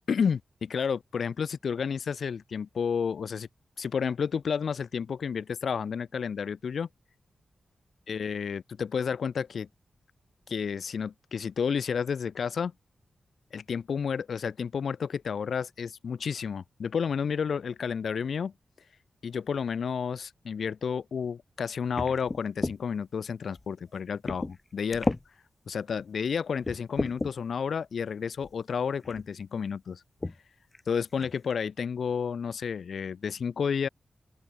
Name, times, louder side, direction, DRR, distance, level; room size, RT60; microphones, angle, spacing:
voice 1, 0.1-3.5 3.8-6.9 8.1-9.7 10.5-12.7 13.5-18.5 19.2-25.1 25.7-30.0 30.9-33.9, left 6 dB, 70° left, 2.5 m, -31 dB
sound 1, 21.9-22.8 23.5-23.6 24.3-24.6 24.9-25.2 25.9-26.0 26.6-27.3 28.4-28.5 29.0-29.3 30.2-30.4 30.7-30.8 31.2-31.5, left 2 dB, 20° left, 2.9 m, -32 dB
open air
wide cardioid pair, 165°, 0 cm